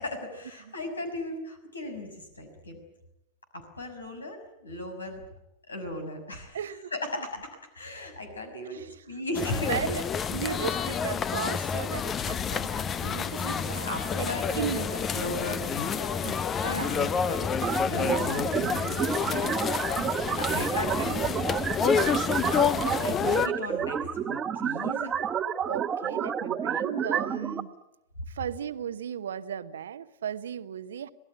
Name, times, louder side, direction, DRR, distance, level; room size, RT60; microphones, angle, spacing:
voice 1, 0.0-2.8 3.5-5.2 5.7-6.6 6.9-7.5 7.7-10.0 10.5-10.8 13.0-16.3 16.6-17.4 17.9-19.6 20.4-21.4 21.9-25.1, left 1 dB, 75° left, 6 dB, 6.0 m, -37 dB
voice 2, 6.5-6.9 7.1-7.3 8.7-8.9 9.7-10.1 10.3-13.9 14.1-14.3 14.5-14.9 16.2-16.4 16.8-17.2 20.2-20.8 25.6-27.7 28.3-31.1, right 9 dB, 65° right, 14 dB, 1.0 m, -36 dB
sound 1, 9.3-23.5, left 7 dB, 25° left, 0.9 m, -29 dB
sound 2, 17.6-27.6, right 8 dB, 25° right, 1.3 m, -30 dB
26.5 x 18.5 x 10.0 m, 0.89 s
figure-of-eight pair, 90°, 0 cm